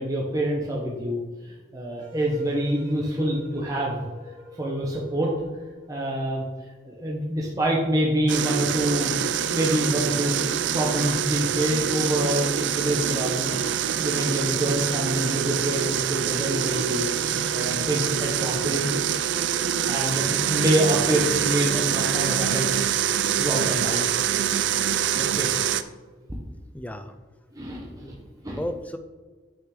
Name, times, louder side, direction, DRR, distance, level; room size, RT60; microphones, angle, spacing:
voice 1, 0.0-4.0 4.6-5.3 5.9-6.4 6.8-9.1 9.5-10.3 10.7-13.6 14.0-17.1 17.5-18.9 19.8-22.9 23.3-24.2 25.1-25.5 27.5-28.6, right 1 dB, 20° right, -3 dB, 1.1 m, -26 dB
sound 1, 2.0-6.3, left 1 dB, 85° right, 2.4 m, -47 dB
sound 2, 8.3-25.8, right 9 dB, 70° right, 0.4 m, -25 dB
voice 2, 17.2-17.6 26.7-27.1 28.0-28.2 28.5-29.0, left 1 dB, 10° left, 9 dB, 0.5 m, -35 dB
8.8 x 6.1 x 3.9 m, 1.3 s
head